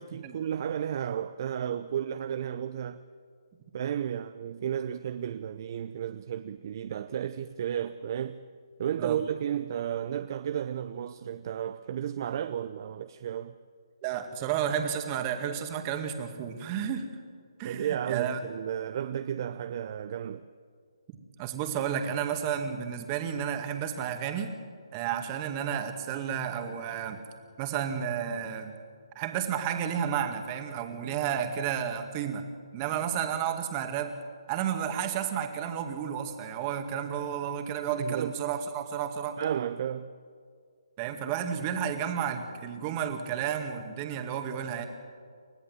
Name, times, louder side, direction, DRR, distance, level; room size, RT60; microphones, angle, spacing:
voice 1, 0.0-3.0 3.7-8.4 8.8-13.5 17.6-20.5 37.9-38.3 39.4-40.1, right 9 dB, 45° right, 0.7 m, -33 dB
voice 2, 14.0-17.1 17.6-18.4 21.4-24.5 24.9-27.2 27.6-28.7 29.2-32.5 32.7-34.2 34.5-39.4 41.0-44.9, right 8 dB, 25° right, 2.1 m, -32 dB
29.5 x 14.5 x 7.8 m
hypercardioid pair, 150°, 3 cm